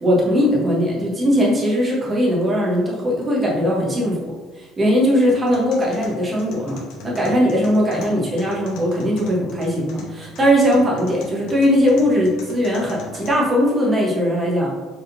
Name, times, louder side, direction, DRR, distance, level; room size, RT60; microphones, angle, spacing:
voice 1, 0.0-14.7, equal, 15° right, -3 dB, 0.9 m, -19 dB
sound 1, 5.3-13.3, left 3 dB, 75° left, 0.9 m, -40 dB
4.4 x 3.6 x 2.6 m, 1.3 s
cardioid pair, 160°, 0 cm